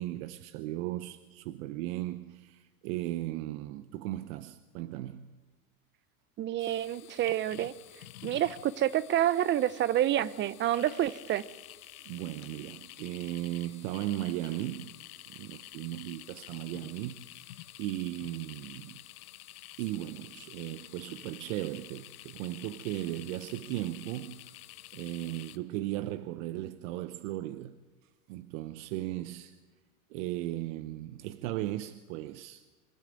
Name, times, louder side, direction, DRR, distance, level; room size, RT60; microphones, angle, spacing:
voice 1, 0.0-5.3 12.1-14.9 15.3-19.0 19.8-24.4 24.9-27.8 28.3-29.6 30.1-32.6, right 15 dB, 60° right, 0.8 m, -37 dB
voice 2, 6.4-7.7 8.2-11.4, right 12 dB, 25° right, 0.6 m, -28 dB
sound 1, 6.6-25.6, left 15 dB, 75° left, 1.1 m, -50 dB
24.5 x 12.0 x 8.9 m
supercardioid pair, 120°, 44 cm